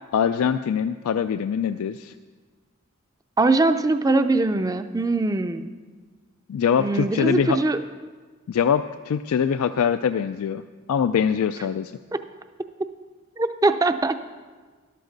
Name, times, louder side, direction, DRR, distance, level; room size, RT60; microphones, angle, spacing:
voice 1, 0.1-2.1 6.5-7.6 8.5-10.6 10.9-11.9, left 7 dB, 90° left, 11 dB, 0.3 m, -23 dB
voice 2, 3.4-5.7 6.8-7.8 12.1-12.2 13.4-14.2, right 2 dB, 15° right, 10 dB, 0.4 m, -21 dB
13.0 x 12.0 x 3.9 m, 1.4 s
head